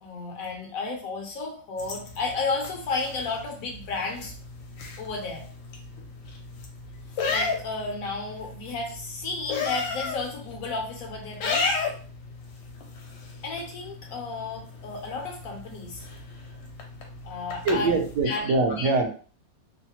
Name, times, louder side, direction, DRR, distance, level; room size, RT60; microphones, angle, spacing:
voice 1, 0.0-4.3 5.0-5.5 7.3-11.7 13.4-16.0 17.2-17.9 18.2-18.4 18.7-18.9, left 3 dB, 65° left, 0 dB, 0.9 m, -32 dB
sound 1, 1.8-18.2, left 4 dB, 80° left, 1.3 m, -35 dB
voice 2, 17.6-19.1, right 3 dB, 70° right, 3 dB, 1.1 m, -23 dB
3.1 x 2.0 x 2.8 m, 0.41 s
omnidirectional pair, 2.1 m